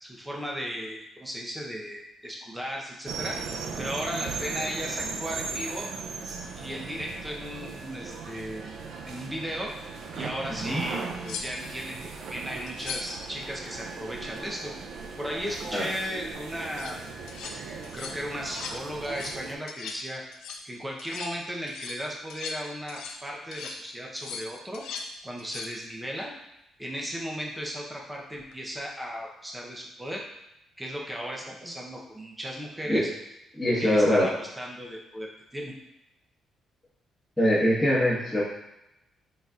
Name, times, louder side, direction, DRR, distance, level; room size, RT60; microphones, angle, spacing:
voice 1, 0.0-3.4 3.8-5.9 6.6-8.7 9.0-9.7 10.1-14.7 15.2-17.2 17.5-20.2 20.6-24.8 25.2-26.3 26.8-30.2 30.8-33.1 33.8-35.7, equal, 10° right, -2 dB, 0.7 m, -36 dB
sound 1, 3.1-19.6, right 4 dB, 75° right, 0.4 m, -38 dB
sound 2, 10.7-10.8 11.2-11.8 12.7-13.2 16.6-17.0 17.3-17.6 17.8-18.2 18.5-18.8 19.0-19.4 19.7-20.1 20.3-20.7 21.0-21.4 21.7-23.3 23.5-23.8 24.2-25.1 25.4-25.8 28.3-28.5, left 5 dB, 90° left, 0.4 m, -39 dB
voice 2, 33.5-34.3 37.4-38.4, equal, 10° left, -12 dB, 1.2 m, -23 dB
4.1 x 3.9 x 2.4 m, 0.87 s
cardioid pair, 115°, 0 cm